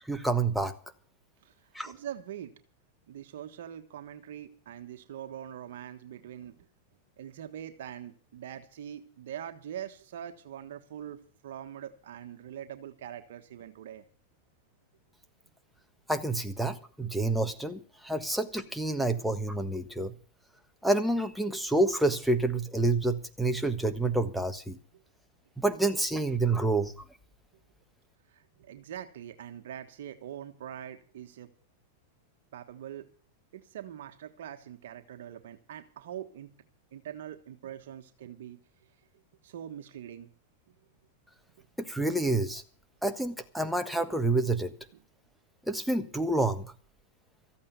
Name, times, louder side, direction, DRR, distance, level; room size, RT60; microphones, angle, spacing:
voice 1, 0.1-0.7 1.7-1.9 16.1-20.1 20.8-24.8 25.6-26.9 41.8-42.6 43.0-44.7 45.7-46.7, right 2 dB, ahead, 7 dB, 1.4 m, -28 dB
voice 2, 1.8-2.6 3.1-6.7 7.2-14.0 28.3-31.5 32.5-33.1 33.5-36.6 36.9-38.6 39.4-40.3, right 10 dB, 75° right, 7 dB, 1.3 m, -43 dB
14.5 x 8.6 x 8.2 m, 0.42 s
hypercardioid pair, 120°, 0 cm